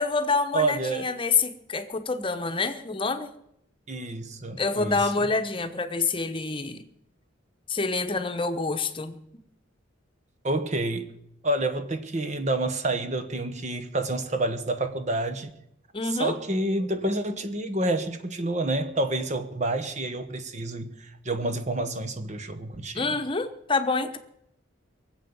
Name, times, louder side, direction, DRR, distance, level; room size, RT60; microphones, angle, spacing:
voice 1, 0.0-3.3 4.6-6.8 7.7-9.2 15.9-16.4 22.9-24.2, left 4 dB, 25° left, 1.1 m, -27 dB
voice 2, 0.5-1.1 3.9-5.1 10.4-11.1 11.4-15.5 16.0-23.1, right 2 dB, 35° right, 1.2 m, -28 dB
22.0 x 8.1 x 7.1 m
head